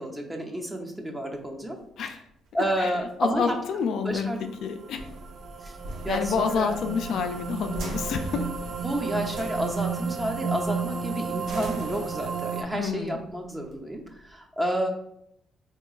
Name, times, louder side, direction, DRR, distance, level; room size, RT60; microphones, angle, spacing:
voice 1, 0.0-1.8 2.5-3.6 4.0-4.4 5.6-5.7 6.0-6.8 8.8-14.9, equal, 15° right, 2 dB, 0.6 m, -30 dB
sound 1, 1.4-14.4, right 1 dB, 85° right, 0.7 m, -43 dB
voice 2, 3.2-5.0 6.1-8.5 12.7-13.2, left 6 dB, 75° left, 7 dB, 0.3 m, -28 dB
sound 2, 4.2-12.6, right 5 dB, 60° right, 0.3 m, -33 dB
3.6 x 2.9 x 2.3 m, 0.75 s
cardioid pair, 90°, 0 cm